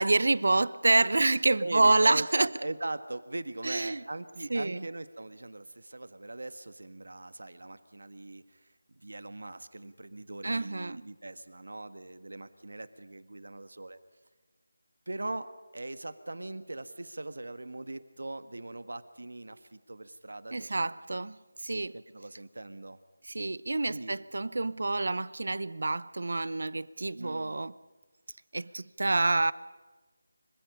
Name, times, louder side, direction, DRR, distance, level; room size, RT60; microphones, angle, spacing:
voice 1, 0.0-2.5 3.6-4.0 4.5-4.8 10.4-11.0 20.5-21.3 21.6-22.0 23.3-27.7 28.5-29.5, right 2 dB, 65° right, 0.7 m, -27 dB
voice 2, 1.6-8.6 8.9-14.0 15.1-21.2 21.9-23.0 23.9-24.1 27.1-27.6 28.6-28.7, right 2 dB, 85° right, 1.5 m, -40 dB
26.0 x 25.0 x 5.5 m
figure-of-eight pair, 175°, 0 cm